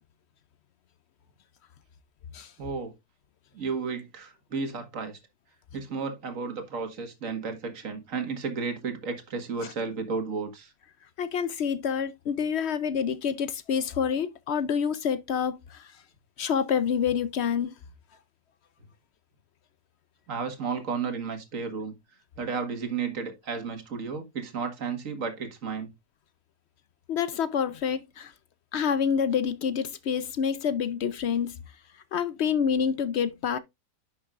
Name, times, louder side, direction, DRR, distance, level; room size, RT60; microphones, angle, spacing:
voice 1, 2.6-2.9 3.5-5.2 5.7-10.7 20.3-21.9 22.4-25.9, right 5 dB, 50° right, 2.0 m, -33 dB
voice 2, 11.2-15.9 16.4-17.7 27.1-28.3 28.7-31.6 32.1-33.6, left 7 dB, 70° left, 0.6 m, -27 dB
10.5 x 6.4 x 2.4 m
omnidirectional pair, 1.8 m